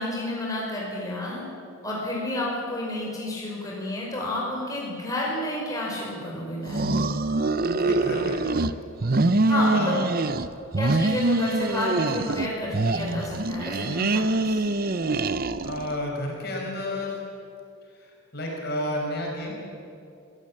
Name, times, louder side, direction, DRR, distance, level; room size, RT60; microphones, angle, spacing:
voice 1, 0.0-1.5 1.8-6.9 9.5-10.0 10.8-14.7, left 1 dB, 15° left, -3 dB, 5.2 m, -30 dB
sound 1, 6.6-8.7 9.0-10.5 10.7-12.5 12.7-15.9, right 2 dB, 45° right, 0.7 m, -24 dB
voice 2, 7.6-8.4 9.7-10.0 15.6-17.2 17.9-19.5, left 1 dB, 50° left, -1 dB, 5.5 m, -31 dB
26.0 x 16.0 x 8.7 m, 2.6 s
head